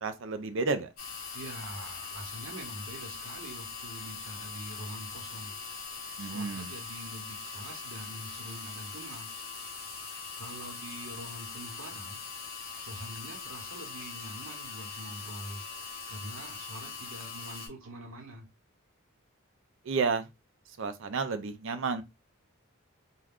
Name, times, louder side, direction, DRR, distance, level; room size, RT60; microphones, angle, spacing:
voice 1, 0.0-0.9 6.2-6.7 19.8-20.3 20.8-22.0, right 4 dB, 60° right, 0.4 m, -31 dB
sound 1, 1.0-17.7, left 5 dB, 45° left, 0.8 m, -41 dB
voice 2, 1.3-5.5 6.2-9.3 10.4-12.2 12.8-18.5, right 1 dB, 75° right, 0.9 m, -45 dB
2.4 x 2.2 x 3.4 m
head